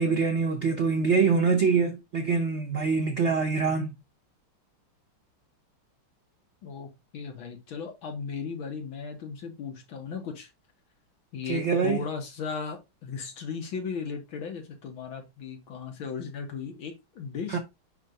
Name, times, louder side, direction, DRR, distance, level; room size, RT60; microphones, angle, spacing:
voice 1, 0.0-3.9 11.5-12.0 17.5-17.6, right 5 dB, 90° right, 0.6 m, -24 dB
voice 2, 6.6-10.5 11.3-17.6, left 5 dB, 70° left, 2.3 m, -36 dB
5.4 x 4.4 x 3.9 m
omnidirectional pair, 2.3 m